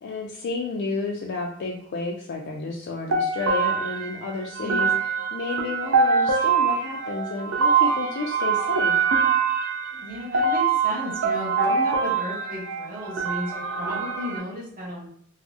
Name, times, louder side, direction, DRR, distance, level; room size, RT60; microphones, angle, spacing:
voice 1, 0.0-4.9 5.3-9.0, left 3 dB, 60° left, 0 dB, 0.3 m, -31 dB
sound 1, 3.1-14.4, right 5 dB, 75° right, 0.5 m, -24 dB
voice 2, 4.6-4.9 10.0-15.1, equal, 45° right, -4 dB, 1.0 m, -34 dB
3.3 x 2.0 x 2.6 m, 0.63 s
head